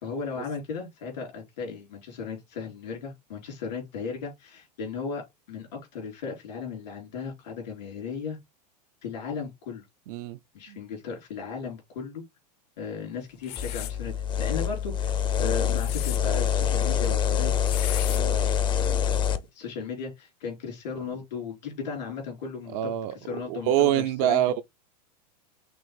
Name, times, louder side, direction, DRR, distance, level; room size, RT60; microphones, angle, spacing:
voice 1, 0.0-8.4 9.0-9.8 10.5-12.2 12.8-17.5 18.0-24.4, left 5 dB, 85° left, 3.4 m, -36 dB
voice 2, 10.1-10.4 10.7-10.8 22.7-23.1 23.5-24.6, right 12 dB, 55° right, 0.5 m, -25 dB
sound 1, 13.4-14.0 15.6-16.2 17.7-18.2, left 14 dB, 65° left, 0.7 m, -36 dB
sound 2, 13.6-19.4, left 9 dB, 20° left, 0.5 m, -25 dB
6.0 x 2.5 x 3.3 m
hypercardioid pair, 120°, 21 cm